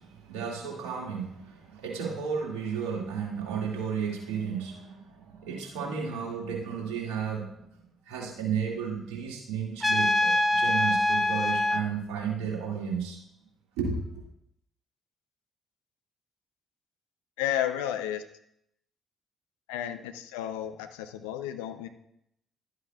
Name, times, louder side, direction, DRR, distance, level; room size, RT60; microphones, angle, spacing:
voice 1, 0.0-7.5 8.1-13.2 13.8-14.2, right 6 dB, 75° right, -2 dB, 2.2 m, -33 dB
Trumpet, 9.8-11.8, left 1 dB, 10° left, 0.9 m, -24 dB
voice 2, 17.4-18.2 19.7-21.9, left 11 dB, 80° left, 9 dB, 0.6 m, -32 dB
11.5 x 8.0 x 2.4 m, 0.75 s
hypercardioid pair, 45°, 0 cm